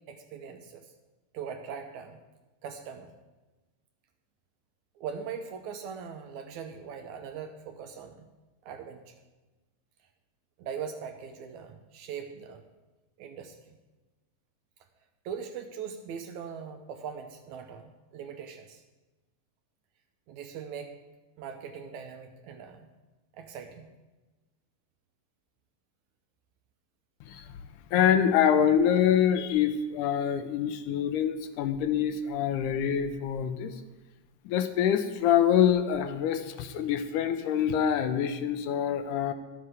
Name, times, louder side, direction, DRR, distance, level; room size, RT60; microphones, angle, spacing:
voice 1, 0.1-0.9 1.3-2.2 2.6-3.1 5.0-8.3 8.6-9.1 10.6-12.6 13.2-13.8 15.2-18.8 20.3-21.0 21.4-22.9 23.4-23.9, right 7 dB, 75° right, 5 dB, 1.8 m, -41 dB
voice 2, 27.9-33.7 34.5-39.3, left 9 dB, 80° left, 9 dB, 2.0 m, -25 dB
11.0 x 7.6 x 4.8 m, 1.1 s
omnidirectional pair, 3.8 m